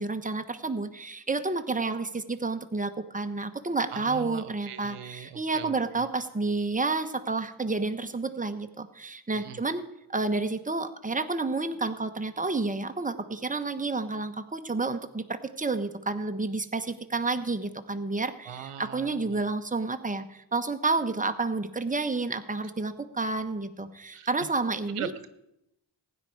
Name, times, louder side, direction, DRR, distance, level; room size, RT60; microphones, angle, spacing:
voice 1, 0.0-25.1, right 3 dB, 15° right, 8 dB, 1.1 m, -30 dB
voice 2, 3.9-6.0 9.3-9.6 18.5-19.2 24.1-24.3 24.9-25.3, right 9 dB, 90° right, 11 dB, 0.9 m, -40 dB
15.5 x 10.0 x 4.7 m, 0.83 s
cardioid pair, 40°, 50 cm